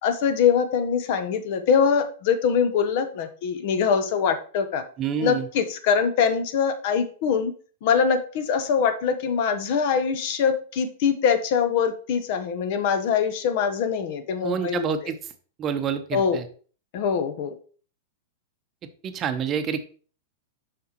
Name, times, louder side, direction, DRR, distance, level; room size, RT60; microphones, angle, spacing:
voice 1, 0.0-4.8 5.2-7.5 7.8-15.1 16.1-16.4 16.9-17.5, left 6 dB, 55° left, 10 dB, 0.9 m, -23 dB
voice 2, 5.0-5.5 14.4-15.2 15.6-16.4 19.0-19.8, right 7 dB, 30° right, 9 dB, 0.7 m, -27 dB
6.8 x 5.1 x 3.0 m, 0.41 s
hypercardioid pair, 125°, 0 cm